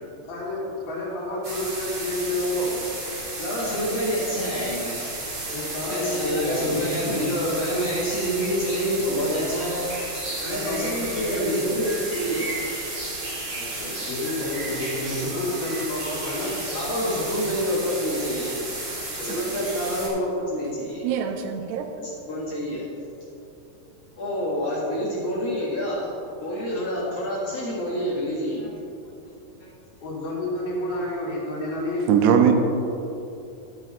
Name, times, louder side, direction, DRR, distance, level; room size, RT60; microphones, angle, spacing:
voice 1, 0.3-2.8 5.5-6.9 10.5-11.8 13.4-16.5 19.2-19.7 30.0-32.1, left 1 dB, 65° left, -6 dB, 4.0 m, -30 dB
sound 1, 1.4-20.1, right 2 dB, 40° right, 2.4 m, -33 dB
voice 2, 3.4-5.3 5.9-9.8 10.4-12.5 16.4-16.5 16.7-18.8 19.2-21.0 22.0-22.8 24.2-26.1 26.4-28.7, equal, 50° left, -7 dB, 2.2 m, -27 dB
voice 3, 21.0-21.9 32.1-32.5, right 8 dB, 80° right, 5 dB, 2.7 m, -20 dB
12.5 x 6.5 x 4.2 m, 2.8 s
omnidirectional pair, 4.8 m